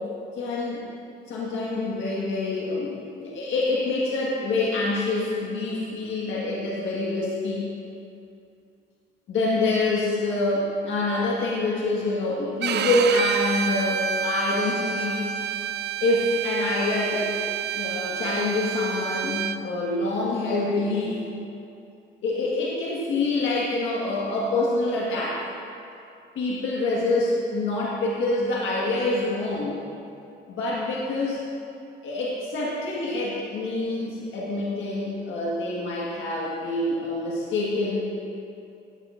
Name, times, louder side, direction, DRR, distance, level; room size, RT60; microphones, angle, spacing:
voice 1, 0.4-0.8 1.3-7.6 9.3-15.3 16.0-17.3 17.7-21.2 22.2-25.5 26.3-29.8 30.5-31.4 32.0-38.2, left 2 dB, 75° left, -5 dB, 1.6 m, -26 dB
Bowed string instrument, 12.6-19.6, right 8 dB, 60° right, 0.4 m, -29 dB
14.0 x 8.9 x 2.5 m, 2.6 s
cardioid pair, 90°, 20 cm